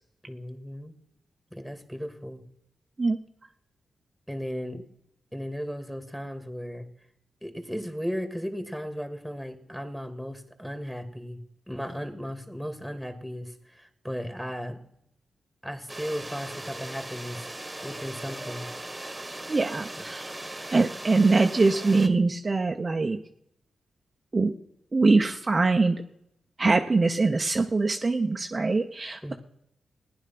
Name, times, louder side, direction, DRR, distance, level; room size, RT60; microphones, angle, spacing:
voice 1, 0.2-0.9 1.5-2.4 4.3-4.8 5.3-6.9 7.4-11.4 11.7-14.8 15.6-17.5 17.8-18.7 20.1-20.2 29.2-29.4, equal, ahead, 7 dB, 2.5 m, -36 dB
sound 1, 15.9-22.1, right 1 dB, 20° right, 1.7 m, -39 dB
voice 2, 19.5-20.3 20.7-23.2 24.3-24.5 24.9-26.0 26.6-29.3, right 3 dB, 40° right, 4 dB, 0.9 m, -23 dB
15.5 x 10.0 x 6.0 m, 0.76 s
supercardioid pair, 40°, 0 cm